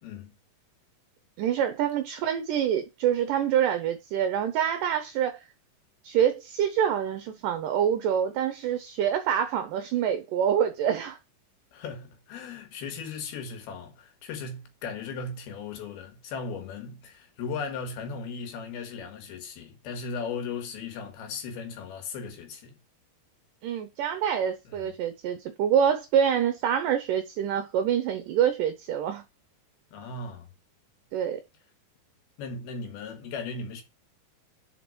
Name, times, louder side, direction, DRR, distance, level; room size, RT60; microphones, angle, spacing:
voice 1, 0.0-0.3 11.7-22.8 24.6-24.9 29.9-30.5 32.4-33.8, left 5 dB, 80° left, 3.5 m, -37 dB
voice 2, 1.4-5.4 6.0-11.2 23.6-29.2 31.1-31.4, right 9 dB, 75° right, 2.0 m, -26 dB
5.8 x 5.4 x 6.0 m
omnidirectional pair, 4.5 m